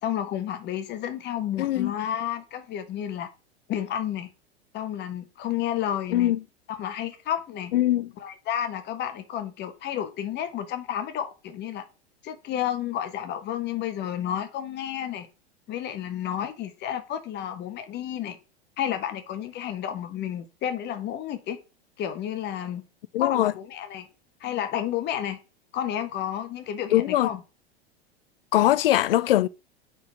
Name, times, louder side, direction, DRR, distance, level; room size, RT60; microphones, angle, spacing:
voice 1, 0.0-3.3 3.7-4.3 4.7-6.3 6.7-7.7 8.2-11.8 12.2-15.3 15.7-18.4 18.8-21.6 22.0-22.8 23.2-24.1 24.4-25.4 25.7-27.4, left 10 dB, 30° left, 1.3 m, -31 dB
voice 2, 1.6-1.9 6.1-6.4 7.7-8.1 23.1-23.5 26.9-27.3 28.5-29.5, left 14 dB, 60° left, 0.6 m, -21 dB
9.5 x 4.1 x 4.9 m
figure-of-eight pair, 90°, 32 cm